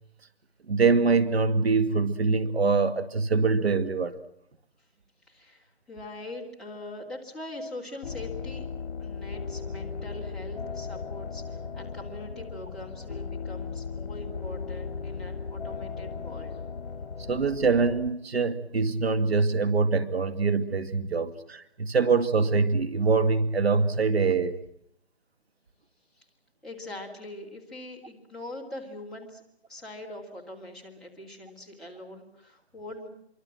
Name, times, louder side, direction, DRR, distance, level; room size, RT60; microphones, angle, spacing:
voice 1, 0.7-4.2 17.3-24.6, right 4 dB, 65° right, 10 dB, 2.2 m, -24 dB
voice 2, 5.3-8.7 9.0-16.6 26.2-26.3 26.6-29.4 29.7-33.1, left 1 dB, ahead, -7 dB, 2.8 m, -42 dB
sound 1, 8.0-18.1, left 5 dB, 55° left, 1.9 m, -37 dB
27.0 x 24.0 x 7.6 m, 0.71 s
figure-of-eight pair, 160°, 33 cm